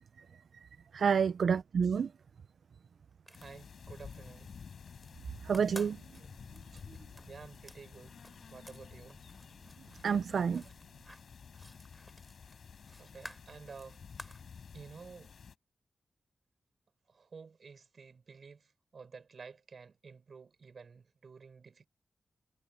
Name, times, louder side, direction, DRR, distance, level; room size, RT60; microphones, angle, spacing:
voice 1, 0.6-2.1 5.4-6.0 10.0-10.6, right 6 dB, 70° right, 0.4 m, -29 dB
sound 1, 3.1-4.2 4.5-5.1 5.4-8.8 9.1-14.5, equal, ahead, 5.6 m, -53 dB
sound 2, 3.3-15.5, left 6 dB, 70° left, 4.3 m, -52 dB
voice 2, 3.3-4.5 7.3-8.2 8.5-9.2 10.5-10.6 13.0-14.0 14.7-15.3 17.1-21.9, right 5 dB, 55° right, 6.2 m, -52 dB
wide cardioid pair, 120°, 0 cm